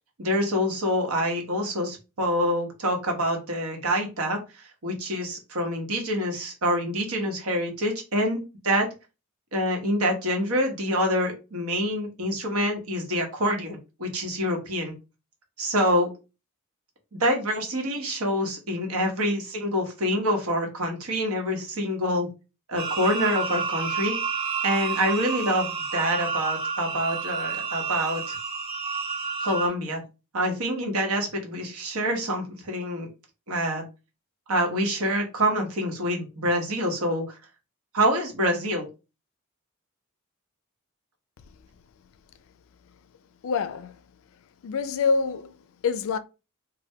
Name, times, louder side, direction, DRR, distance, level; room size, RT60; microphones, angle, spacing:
voice 1, 0.2-8.9 9.5-14.9 15.6-16.1 17.1-22.3 22.7-24.2 24.6-28.4 29.4-30.0 30.3-33.1 33.5-33.8 34.5-37.4 37.9-38.9, equal, 85° right, 1.0 m, -26 dB
sound 1, 22.8-29.7, right 5 dB, 25° right, 0.6 m, -30 dB
voice 2, 43.4-44.0 44.6-45.5 45.8-46.2, left 5 dB, 65° left, 0.3 m, -26 dB
3.3 x 2.2 x 2.7 m
head